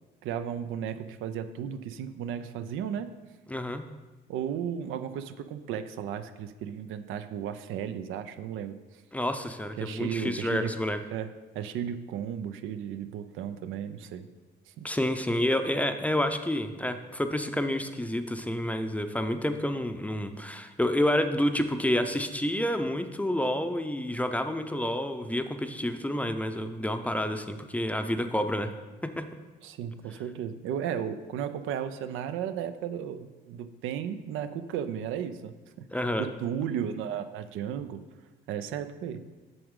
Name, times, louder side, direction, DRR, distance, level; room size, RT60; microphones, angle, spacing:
voice 1, 0.2-3.1 4.3-8.8 9.8-10.7 11.1-14.3 14.8-14.9 29.6-35.9 36.2-38.0 38.5-39.3, right 8 dB, 90° right, 10 dB, 0.5 m, -34 dB
voice 2, 3.5-3.8 9.1-11.0 14.8-28.7 29.0-29.2 35.9-36.3, left 1 dB, 5° left, 8 dB, 0.5 m, -29 dB
7.8 x 6.1 x 3.7 m, 1.2 s
cardioid pair, 90°, 20 cm